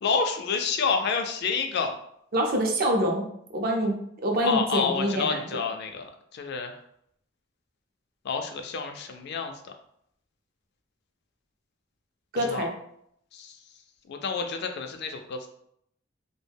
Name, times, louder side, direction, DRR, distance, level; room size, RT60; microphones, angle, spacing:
voice 1, 0.0-1.9 4.4-6.8 8.2-9.5 12.4-12.7 13.3-13.5 14.1-15.5, left 5 dB, 55° left, 5 dB, 0.3 m, -29 dB
voice 2, 2.3-3.3 3.5-5.6 12.3-12.7, right 1 dB, 50° right, 1 dB, 0.5 m, -26 dB
2.2 x 2.1 x 3.3 m, 0.71 s
head